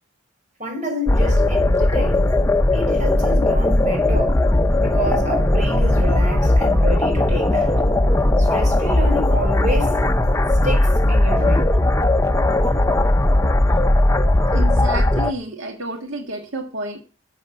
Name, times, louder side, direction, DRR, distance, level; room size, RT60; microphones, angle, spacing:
voice 1, 0.6-2.3 2.7-4.4 4.8-7.7 8.4-10.0 10.6-11.8, right 1 dB, 40° right, 5.9 m, -28 dB
sound 1, 1.1-15.3, left 1 dB, 15° left, 0.7 m, -17 dB
voice 2, 14.5-17.0, right 1 dB, 85° right, 1.7 m, -30 dB
12.0 x 6.6 x 8.3 m
head